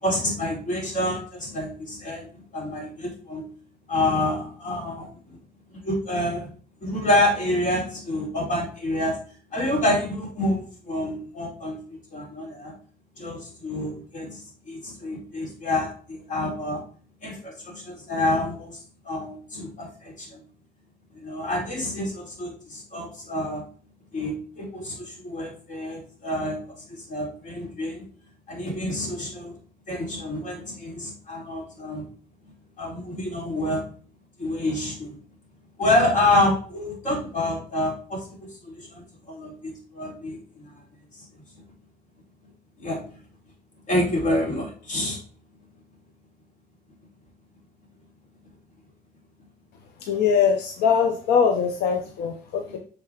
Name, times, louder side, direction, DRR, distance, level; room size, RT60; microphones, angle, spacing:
voice 1, 0.0-2.3 2.5-3.4 3.9-5.4 5.8-6.5 6.8-9.2 9.5-12.7 13.2-14.4 14.7-16.8 17.2-18.8 19.0-20.4 21.2-23.6 24.1-26.6 26.9-28.0 28.5-29.5 29.9-32.0 32.8-33.8 34.4-35.2 35.8-38.2 38.8-40.7 42.8-43.2 43.9-45.2 52.0-52.1 52.7-52.8, left 1 dB, 45° left, -2 dB, 3.6 m, -27 dB
voice 2, 50.1-52.8, left 6 dB, 85° left, 4 dB, 0.8 m, -22 dB
7.8 x 4.4 x 3.6 m, 0.43 s
cardioid pair, 110°, 17 cm